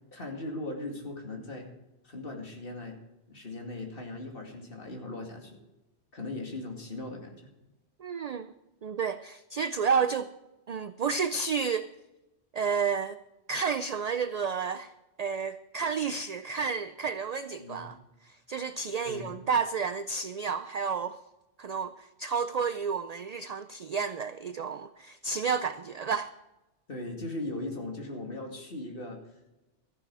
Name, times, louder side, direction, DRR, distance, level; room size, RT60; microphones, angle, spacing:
voice 1, 0.1-1.7 2.0-3.0 3.3-5.6 6.1-7.5 17.6-17.9 19.1-19.3 26.9-29.2, left 2 dB, 50° left, 2 dB, 2.6 m, -38 dB
voice 2, 8.0-8.5 8.8-10.3 10.7-11.9 12.5-13.2 13.5-14.9 15.2-18.0 18.2-21.2 21.6-26.3, right 6 dB, 55° right, 12 dB, 0.4 m, -31 dB
14.0 x 11.0 x 4.8 m, 1.0 s
omnidirectional pair, 1.2 m